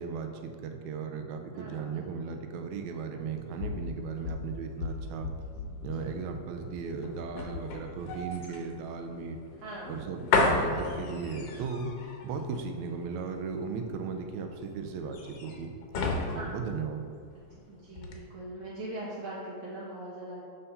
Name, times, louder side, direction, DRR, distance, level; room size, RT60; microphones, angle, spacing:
voice 1, 0.0-5.3 5.8-9.4 9.9-12.0 12.2-17.0, right 5 dB, 80° right, 5 dB, 1.8 m, -36 dB
voice 2, 1.5-2.0 5.9-6.1 9.6-10.0 12.4-12.6 16.3-16.5 17.3-20.4, right 1 dB, 55° right, -8 dB, 1.5 m, -41 dB
sound 1, 3.2-17.6 17.9-18.1, left 3 dB, 70° left, 1.6 m, -34 dB
6.7 x 5.6 x 4.1 m, 2.1 s
omnidirectional pair, 3.5 m